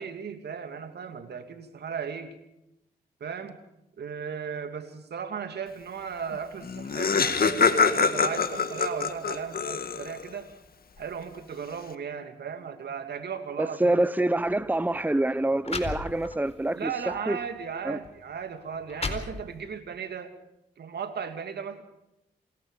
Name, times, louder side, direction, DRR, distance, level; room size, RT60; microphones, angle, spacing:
voice 1, 0.0-2.4 3.2-3.6 4.0-10.5 11.0-14.0 16.7-20.3 20.8-21.8, right 6 dB, 65° right, 2.7 m, -36 dB
Laughter, 6.4-6.5 6.6-10.3, left 5 dB, 55° left, 2.0 m, -25 dB
voice 2, 13.6-17.4 17.8-18.0, right 1 dB, 10° right, 1.0 m, -26 dB
sound 1, 14.4-14.6 15.3-15.4 15.6-16.5 17.1-17.3 18.0-18.1 18.6-19.8, left 3 dB, 35° left, 4.3 m, -35 dB
28.0 x 20.5 x 5.1 m
supercardioid pair, 45°, 19 cm